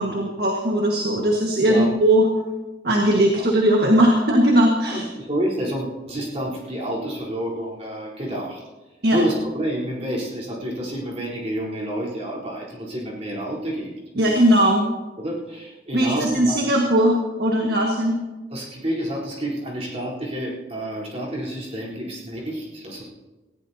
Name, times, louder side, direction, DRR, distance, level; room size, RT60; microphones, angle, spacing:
voice 1, 0.0-2.3 2.8-5.0 9.0-9.2 14.2-14.8 15.9-18.2, right 1 dB, 60° right, 0 dB, 1.7 m, -19 dB
voice 2, 4.9-8.6 9.1-13.9 15.2-16.7 18.5-23.0, right 1 dB, 35° right, -5 dB, 4.0 m, -29 dB
19.0 x 16.0 x 2.9 m, 1.2 s
head